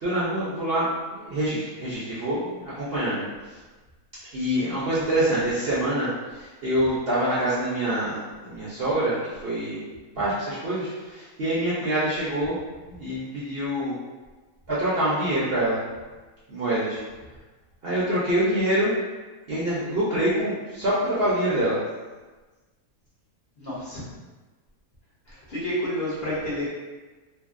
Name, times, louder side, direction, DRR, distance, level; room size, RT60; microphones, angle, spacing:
voice 1, 0.0-3.6 4.3-9.8 10.2-12.6 12.9-14.0 14.7-15.8 16.5-17.0 17.8-18.9 19.5-21.8, right 1 dB, 55° right, -9 dB, 0.7 m, -26 dB
voice 2, 23.6-24.1 25.3-26.7, equal, 50° left, -8 dB, 0.9 m, -30 dB
2.7 x 2.7 x 2.5 m, 1.3 s
omnidirectional pair, 1.6 m